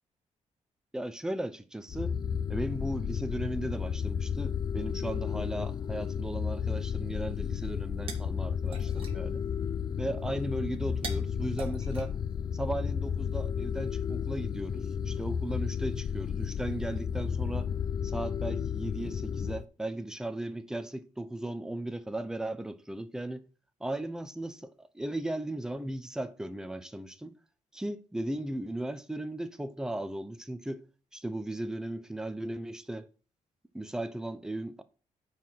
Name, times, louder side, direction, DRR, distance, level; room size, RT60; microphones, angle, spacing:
voice 1, 0.9-2.2 2.5-9.4 10.0-12.2 12.5-17.7 18.0-23.4 23.8-27.3 27.7-30.8 31.1-33.1 33.7-34.8, right 1 dB, 5° right, 0.7 m, -36 dB
sound 1, 1.9-19.6, left 7 dB, 35° left, 0.3 m, -33 dB
sound 2, 7.6-12.9, right 5 dB, 45° right, 1.9 m, -47 dB
9.2 x 4.8 x 6.1 m
wide cardioid pair, 165°, 13 cm